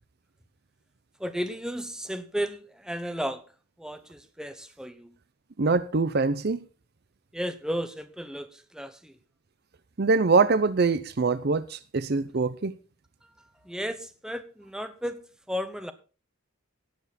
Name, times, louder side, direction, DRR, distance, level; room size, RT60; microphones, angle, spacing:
voice 1, 1.2-3.4 3.8-5.1 7.3-8.5 8.7-9.1 13.7-15.2 15.5-15.9, equal, 5° right, 0.9 m, -33 dB
voice 2, 5.6-6.6 10.0-12.7, right 4 dB, 50° right, 0.6 m, -24 dB
18.0 x 7.2 x 4.2 m
head